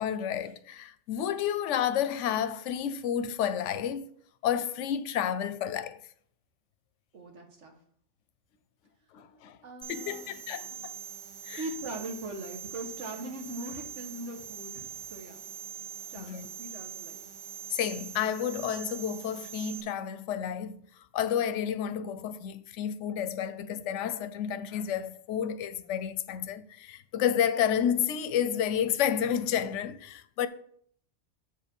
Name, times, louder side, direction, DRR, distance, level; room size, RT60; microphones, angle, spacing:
voice 1, 0.0-4.0 4.4-6.0 9.1-9.6 9.9-10.9 11.5-11.6 16.2-16.5 17.7-20.8 21.1-30.5, left 9 dB, 85° left, 0.9 m, -30 dB
voice 2, 7.1-7.7 9.6-10.3 11.5-15.5 16.1-17.2 30.4-30.5, right 1 dB, 90° right, 1.6 m, -41 dB
sound 1, 9.8-19.8, right 8 dB, 30° right, 0.6 m, -43 dB
7.2 x 4.8 x 5.2 m
omnidirectional pair, 1.2 m